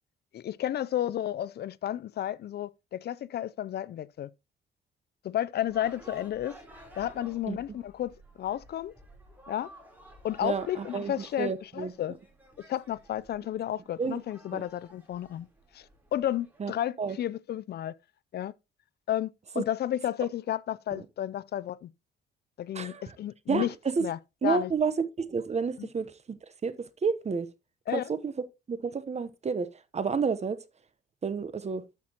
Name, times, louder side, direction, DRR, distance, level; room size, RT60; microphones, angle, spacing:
voice 1, 0.3-4.3 5.2-6.5 6.9-8.9 9.5-9.7 10.2-12.2 12.7-15.5 15.7-17.9 18.3-18.5 19.1-19.3 19.6-21.9 22.6-23.7 24.0-24.7 25.8-25.9 27.9-28.1, left 11 dB, 55° left, 0.4 m, -32 dB
sound 1, 5.6-16.6, right 1 dB, 10° right, 3.5 m, -54 dB
voice 2, 10.4-11.9 14.0-14.2 14.5-14.6 16.6-16.7 17.0-17.2 19.6-19.7 20.9-21.0 22.7-23.0 23.5-23.7 24.0-24.1 24.4-26.1 26.6-26.7 27.0-27.5 27.9-29.7 29.9-30.6 31.2-31.8, right 5 dB, 35° right, 0.9 m, -30 dB
12.5 x 5.8 x 2.9 m
cardioid pair, 90°, 20 cm